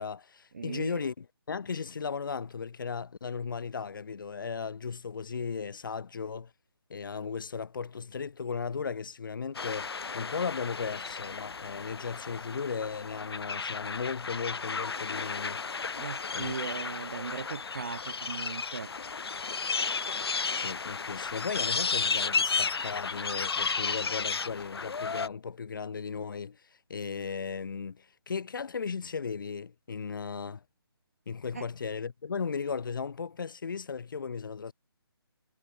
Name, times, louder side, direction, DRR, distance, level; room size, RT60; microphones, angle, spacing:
voice 1, 0.0-6.5 6.9-15.6 16.3-16.5 20.5-26.6 26.9-30.6 31.3-34.7, left 5 dB, 55° left, 1.3 m, -36 dB
voice 2, 0.5-1.0 16.0-18.9 31.5-31.6, right 5 dB, 35° right, 0.4 m, -38 dB
sound 1, 9.5-25.3, left 5 dB, 70° left, 1.1 m, -33 dB
hypercardioid pair, 170°, 13 cm